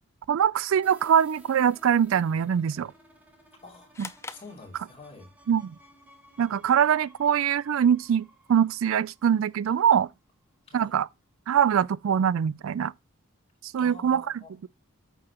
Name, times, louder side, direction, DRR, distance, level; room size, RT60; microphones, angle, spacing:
voice 1, 0.3-2.9 4.0-4.1 5.5-5.7 6.4-10.1 10.7-11.1 11.5-12.9 13.6-14.2, right 8 dB, 70° right, 0.3 m, -23 dB
sound 1, 0.8-10.4, right 1 dB, 10° right, 1.7 m, -56 dB
voice 2, 3.6-3.9 4.3-5.3 10.7-10.9 13.8-14.5, left 3 dB, 30° left, 2.9 m, -47 dB
sound 2, 3.9-5.4, left 4 dB, 10° left, 0.3 m, -44 dB
8.5 x 6.9 x 2.9 m
head